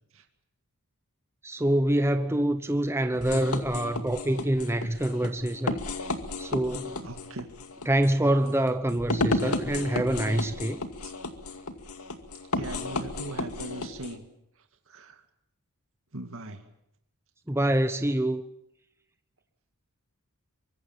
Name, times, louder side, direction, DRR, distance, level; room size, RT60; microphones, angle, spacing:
voice 1, 1.4-5.8 6.4-7.0 7.9-10.8 17.5-18.4, right 1 dB, 10° right, 0.9 m, -26 dB
sound 1, 3.1-14.2, left 2 dB, 75° left, 2.3 m, -33 dB
voice 2, 7.0-7.5 11.0-11.1 12.5-14.2 14.9-15.2 16.1-16.6, right 1 dB, 65° right, 2.2 m, -39 dB
24.5 x 23.0 x 7.4 m
head